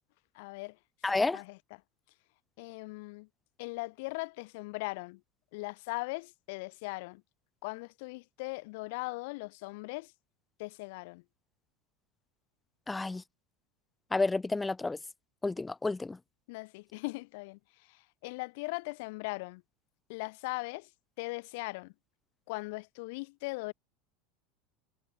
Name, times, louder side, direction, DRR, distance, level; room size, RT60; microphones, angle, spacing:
voice 1, 0.3-0.8 1.3-1.8 2.6-3.3 3.6-5.2 5.5-7.2 7.6-10.1 10.6-11.2 16.5-19.6 20.1-20.9 21.2-21.9 22.5-23.7, left 26 dB, 70° left, 1.4 m, -39 dB
voice 2, 1.0-1.4 12.9-13.2 14.1-15.0 15.4-16.2, left 3 dB, 10° left, 0.9 m, -30 dB
supercardioid pair, 120°, 0 cm